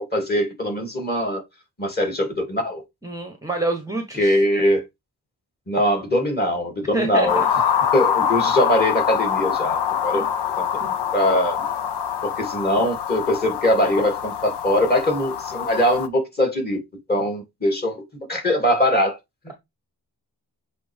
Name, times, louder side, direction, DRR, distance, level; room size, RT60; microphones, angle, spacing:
voice 1, 0.0-1.4 1.8-2.8 4.2-4.8 5.7-7.4 7.9-10.2 10.6-10.8 11.1-11.6 12.2-16.8 17.1-18.0 18.3-19.2, left 1 dB, 25° left, 2.7 m, -22 dB
voice 2, 3.0-4.4 6.9-7.5 10.1-10.3 10.7-10.9, right 2 dB, 10° right, 1.0 m, -28 dB
sound 1, 7.3-16.1, left 8 dB, 80° left, 0.8 m, -24 dB
7.8 x 3.7 x 3.5 m
wide cardioid pair, 160°, 40 cm